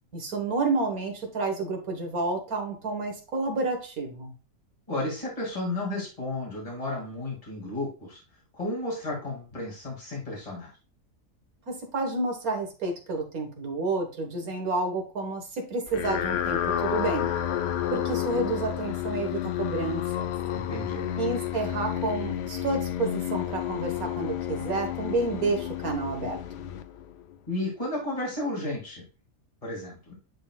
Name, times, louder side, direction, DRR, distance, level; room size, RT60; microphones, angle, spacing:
voice 1, 0.1-4.3 11.7-17.3 17.9-20.3 21.2-26.7, right 3 dB, 85° right, 3 dB, 1.9 m, -30 dB
voice 2, 4.9-8.2 8.5-10.7 20.5-21.1 27.5-29.0 29.6-30.1, left 2 dB, 25° left, -4 dB, 2.3 m, -33 dB
sound 1, 15.9-27.3, left 11 dB, 65° left, 0.7 m, -31 dB
10.5 x 4.0 x 2.3 m, 0.34 s
omnidirectional pair, 1.5 m